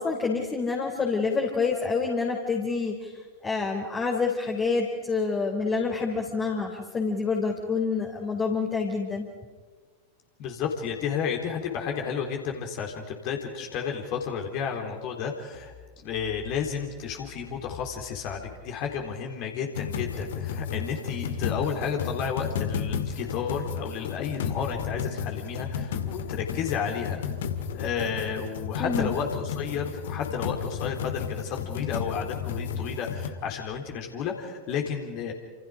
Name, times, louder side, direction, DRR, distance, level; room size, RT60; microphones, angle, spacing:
voice 1, 0.0-3.1 3.4-9.3 28.8-29.1, left 4 dB, 20° left, 0 dB, 3.6 m, -27 dB
voice 2, 10.4-15.7 16.0-27.2 27.7-35.3, left 7 dB, 40° left, 2 dB, 3.7 m, -32 dB
sound 1, 19.7-33.3, left 7 dB, 60° left, 2.0 m, -33 dB
29.5 x 28.0 x 5.1 m, 1.4 s
figure-of-eight pair, 90°, 0 cm